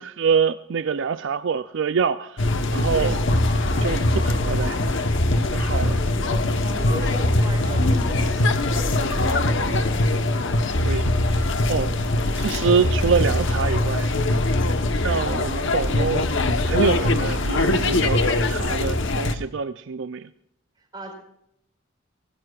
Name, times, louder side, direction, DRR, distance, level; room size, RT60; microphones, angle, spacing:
voice 1, 0.0-3.2 3.8-5.2 5.5-6.0 10.8-11.9 12.3-14.1 14.6-16.3 16.7-20.3, right 6 dB, 60° right, 0.4 m, -26 dB
sound 1, 2.4-19.3, left 2 dB, 65° left, 1.1 m, -22 dB
voice 2, 6.8-10.0 12.2-12.5 20.8-21.1, right 1 dB, 20° right, 4.8 m, -38 dB
23.5 x 18.5 x 2.4 m
head